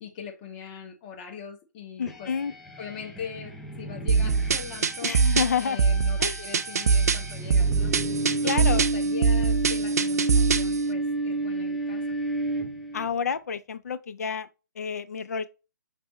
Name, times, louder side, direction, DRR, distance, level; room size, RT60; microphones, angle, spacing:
voice 1, 0.0-2.3 2.8-5.2 5.6-8.0 8.4-12.2, left 6 dB, 25° left, 1.0 m, -41 dB
voice 2, 2.0-2.5 5.0-5.8 6.2-6.4 8.4-8.8 12.9-14.5 14.8-15.5, left 6 dB, 55° left, 0.5 m, -29 dB
sound 1, 2.1-13.1, right 2 dB, ahead, 0.4 m, -31 dB
sound 2, 4.1-10.8, right 5 dB, 55° right, 0.5 m, -23 dB
5.1 x 3.4 x 3.0 m
figure-of-eight pair, 135°, 10 cm